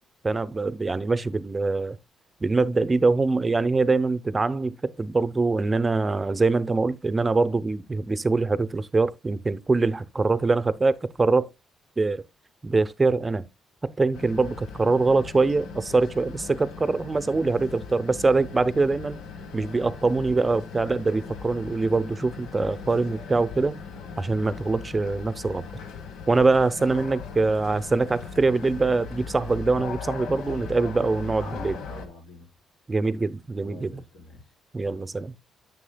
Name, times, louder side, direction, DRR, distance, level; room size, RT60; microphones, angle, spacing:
voice 1, 0.2-2.0 2.4-11.5 12.0-12.2 12.6-13.5 14.0-19.2 19.5-23.8 24.2-25.6 26.3-31.8 32.9-34.0 34.7-35.3, right 3 dB, 25° right, 0.6 m, -23 dB
sound 1, 14.1-32.1, left 5 dB, 90° left, 1.0 m, -39 dB
voice 2, 30.8-32.5 33.6-35.0, left 2 dB, 75° left, 4.3 m, -46 dB
9.8 x 7.1 x 2.2 m
cardioid pair, 90°, 0 cm